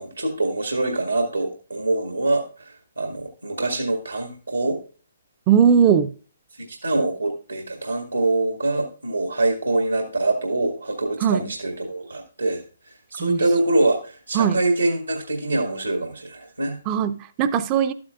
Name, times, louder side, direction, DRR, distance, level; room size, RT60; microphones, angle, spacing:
voice 1, 0.0-4.8 6.5-16.8, right 2 dB, 85° right, 3 dB, 1.7 m, -24 dB
voice 2, 5.5-6.1 11.2-11.4 13.2-13.4 14.4-14.6 16.9-17.9, right 8 dB, 25° right, 11 dB, 0.5 m, -19 dB
12.0 x 8.7 x 2.4 m, 0.37 s
figure-of-eight pair, 130°, 0 cm